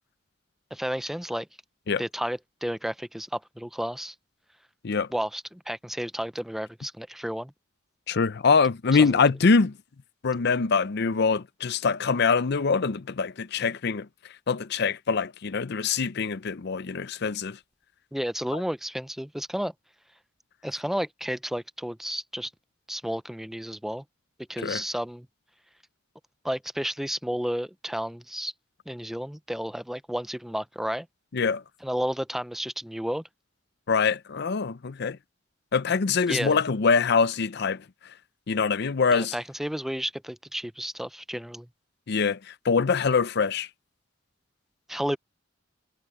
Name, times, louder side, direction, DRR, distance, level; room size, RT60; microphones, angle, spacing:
voice 1, 0.7-1.5 2.0-4.1 5.1-7.5 8.9-9.3 18.1-19.7 20.6-22.5 22.9-24.0 24.5-25.3 26.4-28.5 28.9-31.1 31.8-33.2 36.3-36.6 39.1-41.7 44.9-45.2, equal, ahead, 0.4 m, -32 dB
voice 2, 8.1-9.7 10.2-14.1 14.5-17.6 18.5-18.6 24.6-24.8 31.3-31.6 33.9-35.2 35.7-37.8 38.5-39.3 42.1-42.4 42.6-43.7, left 5 dB, 60° left, 0.6 m, -24 dB
head